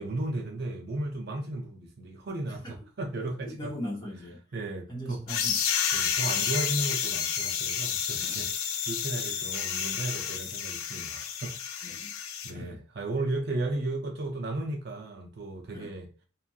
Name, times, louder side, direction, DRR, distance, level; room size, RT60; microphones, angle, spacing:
voice 1, 0.0-3.7 4.5-5.2 5.9-8.5 8.9-11.6 12.4-16.1, right 2 dB, 50° right, 0.5 m, -34 dB
voice 2, 3.4-4.4 4.9-5.6 5.9-6.1 8.2-8.4 11.8-12.1 12.5-12.8 15.7-15.9, equal, 20° left, 0.8 m, -39 dB
sound 1, 5.3-12.5, left 8 dB, 80° left, 0.4 m, -30 dB
2.9 x 2.5 x 2.2 m
head